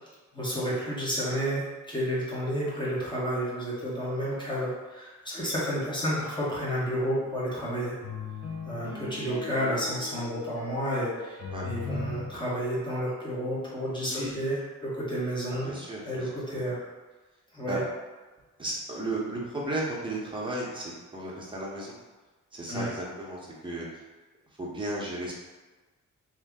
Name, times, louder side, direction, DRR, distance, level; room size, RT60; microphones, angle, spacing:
voice 1, 0.3-8.0 8.6-15.7 16.0-16.8 17.5-17.8 22.7-22.9, equal, 15° left, -7 dB, 1.1 m, -31 dB
sound 1, 8.0-12.3, left 4 dB, 50° left, 0.8 m, -38 dB
voice 2, 14.0-14.4 15.5-16.6 17.7-17.8 18.6-22.0 22.5-23.9 24.6-25.3, right 1 dB, 15° right, -5 dB, 0.8 m, -34 dB
2.8 x 2.6 x 3.5 m, 1.2 s
wide cardioid pair, 110°, 32 cm